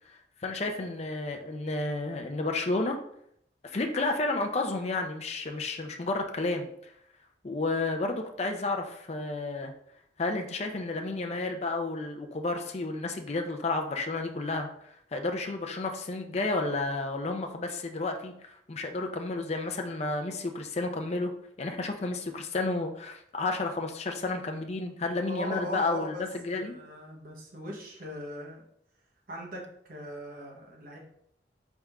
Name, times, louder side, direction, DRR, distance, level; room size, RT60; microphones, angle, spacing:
voice 1, 0.4-3.0 3.6-6.7 7.4-9.7 10.2-14.7 15.1-21.3 21.6-26.7, left 2 dB, 35° left, 3 dB, 0.5 m, -31 dB
voice 2, 25.3-26.2 26.5-28.6 29.3-31.0, equal, 50° right, -1 dB, 1.1 m, -40 dB
4.2 x 3.6 x 3.5 m, 0.70 s
head